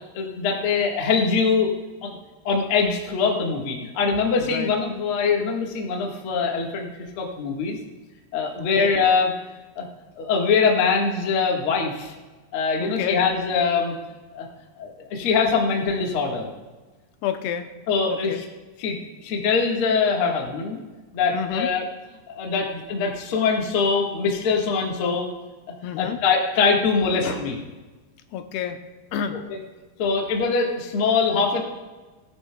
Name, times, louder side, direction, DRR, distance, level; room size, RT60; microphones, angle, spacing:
voice 1, 0.1-1.7 2.0-2.2 2.4-6.9 7.2-7.8 8.3-9.3 9.7-9.9 10.2-12.1 12.5-13.9 14.3-14.5 14.8-16.5 17.9-18.3 18.8-20.8 21.1-21.8 22.3-25.3 26.0-27.6 30.0-31.6, left 5 dB, 50° left, -1 dB, 1.7 m, -23 dB
voice 2, 4.4-4.7 8.6-8.9 12.8-13.2 17.2-17.7 18.1-18.4 21.3-21.7 25.8-26.2 28.3-28.8 29.1-29.4, left 9 dB, 85° left, 6 dB, 2.8 m, -29 dB
17.5 x 11.0 x 2.3 m, 1.2 s
omnidirectional pair, 4.5 m